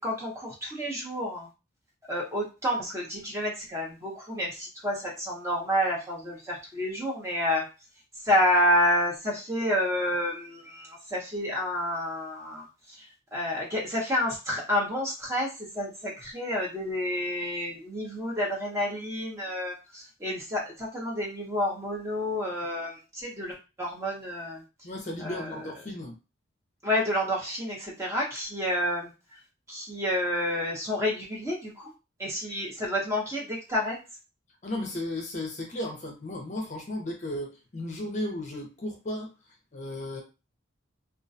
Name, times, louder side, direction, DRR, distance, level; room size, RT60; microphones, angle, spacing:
voice 1, 0.0-1.5 2.1-7.6 8.2-12.6 13.3-24.6 25.2-25.5 26.8-29.1 29.7-31.9 32.2-34.0, left 1 dB, 15° right, -3 dB, 0.6 m, -29 dB
voice 2, 24.8-26.2 34.6-39.3 39.7-40.2, left 1 dB, 35° left, 1 dB, 0.5 m, -34 dB
2.4 x 2.1 x 2.5 m, 0.29 s
head